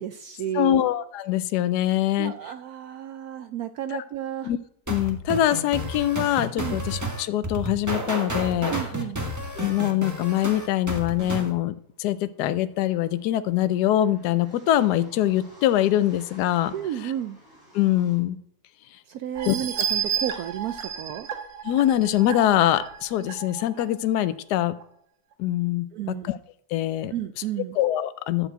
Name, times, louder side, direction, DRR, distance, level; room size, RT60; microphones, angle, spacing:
voice 1, 0.0-0.8 2.2-4.5 6.6-6.8 8.7-9.2 16.7-17.4 19.1-21.3 25.9-26.3 27.1-27.8, right 10 dB, 75° right, 10 dB, 0.9 m, -32 dB
voice 2, 0.5-2.3 3.9-4.0 4.4-4.6 4.9-8.7 9.6-16.7 17.0-17.1 17.7-18.4 19.5-19.6 21.6-24.7 25.4-26.4 26.7-27.1 27.7-28.5, left 12 dB, 70° left, 14 dB, 1.1 m, -23 dB
sound 1, 4.9-11.5, right 1 dB, 10° right, 1.0 m, -31 dB
sound 2, 11.9-18.2, equal, 55° right, 5.8 m, -52 dB
sound 3, 19.4-23.8 24.3-24.4 24.8-24.9, right 8 dB, 90° right, 1.9 m, -31 dB
12.0 x 4.4 x 7.9 m, 0.72 s
omnidirectional pair, 2.0 m